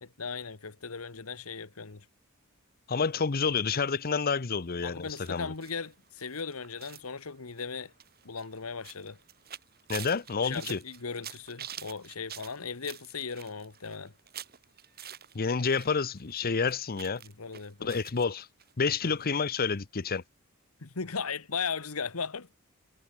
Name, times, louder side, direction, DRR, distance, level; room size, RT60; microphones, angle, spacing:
voice 1, 0.0-2.0 4.8-7.9 8.2-9.2 10.4-14.1 17.2-17.9 18.8-19.2 20.8-22.5, left 5 dB, 75° left, 1.3 m, -37 dB
voice 2, 2.9-5.5 9.9-10.8 15.3-17.2 17.8-18.5 18.8-20.2, left 5 dB, 45° left, 0.8 m, -29 dB
sound 1, 5.1-15.9 16.2-18.3 18.6-18.7 19.0-19.1, right 10 dB, 45° right, 4.7 m, -47 dB
head